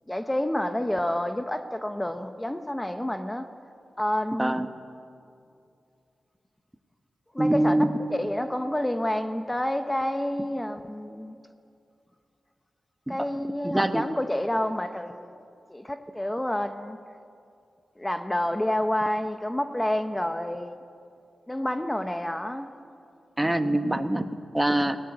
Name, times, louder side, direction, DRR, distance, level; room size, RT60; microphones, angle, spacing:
voice 1, 0.1-3.5 4.0-4.5 7.3-7.8 8.1-11.4 13.1-15.4 15.7-17.0 18.0-20.8 21.5-22.7, left 1 dB, 10° left, 8 dB, 0.9 m, -29 dB
voice 2, 7.4-7.9 13.1-13.2 13.6-14.0 23.4-25.0, right 1 dB, 10° right, 9 dB, 1.1 m, -24 dB
21.5 x 18.0 x 9.7 m, 2.5 s
wide cardioid pair, 90°, 0 cm